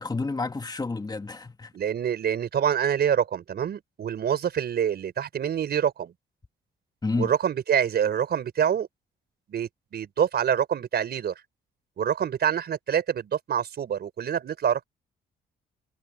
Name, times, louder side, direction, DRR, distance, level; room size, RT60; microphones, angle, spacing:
voice 1, 0.0-1.7 7.0-7.3, left 3 dB, 20° left, 2.2 m, -30 dB
voice 2, 1.7-6.1 7.2-8.9 9.5-11.3 12.0-14.8, right 8 dB, 60° right, 4.5 m, -26 dB
cardioid pair, 85°, 19 cm